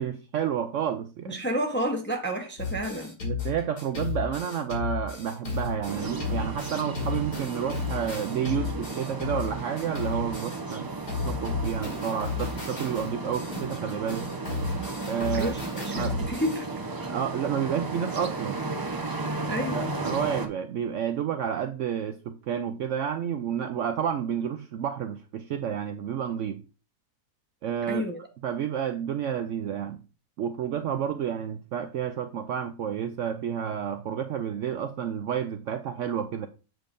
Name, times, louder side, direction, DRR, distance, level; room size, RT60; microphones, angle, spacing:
voice 1, 0.0-1.4 3.2-10.9 11.2-14.3 15.1-15.6 15.9-16.1 17.0-18.6 19.6-26.6 27.6-28.1 28.4-30.0 30.4-36.5, right 8 dB, 70° right, 0.7 m, -30 dB
voice 2, 1.3-3.1 15.3-16.7 19.4-19.8 27.9-28.2, equal, 10° left, 0.6 m, -30 dB
sound 1, 2.6-10.7 11.1-16.6, left 4 dB, 85° left, 2.9 m, -33 dB
sound 2, 5.9-20.5, right 3 dB, 30° right, 0.4 m, -34 dB
7.6 x 6.7 x 2.6 m
omnidirectional pair, 1.6 m